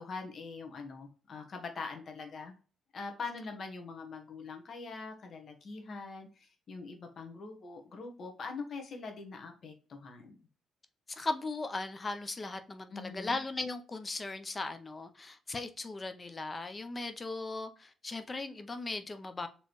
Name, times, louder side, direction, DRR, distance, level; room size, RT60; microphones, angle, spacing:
voice 1, 0.0-2.5 2.9-10.4 12.9-13.4, left 4 dB, 50° left, 1.2 m, -43 dB
voice 2, 11.1-19.5, left 3 dB, 25° left, 0.6 m, -38 dB
4.3 x 3.2 x 3.1 m
cardioid pair, 90°, 0 cm